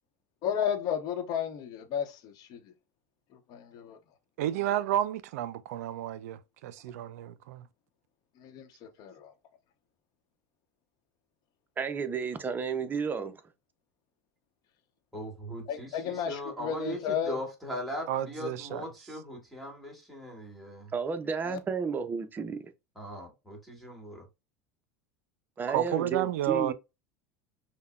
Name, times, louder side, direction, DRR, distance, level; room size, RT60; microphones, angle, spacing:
voice 1, 0.4-2.6 3.5-4.0 8.4-9.3 15.7-17.4 21.5-21.6, left 8 dB, 50° left, 0.8 m, -33 dB
voice 2, 4.4-7.6 18.1-18.8 25.7-26.7, right 12 dB, 80° right, 0.4 m, -31 dB
voice 3, 11.8-13.4 20.9-22.6 25.6-26.7, right 5 dB, 25° right, 0.6 m, -32 dB
voice 4, 15.1-20.9 22.9-24.2, equal, ahead, 1.7 m, -39 dB
5.5 x 2.1 x 2.3 m
supercardioid pair, 105°, 8 cm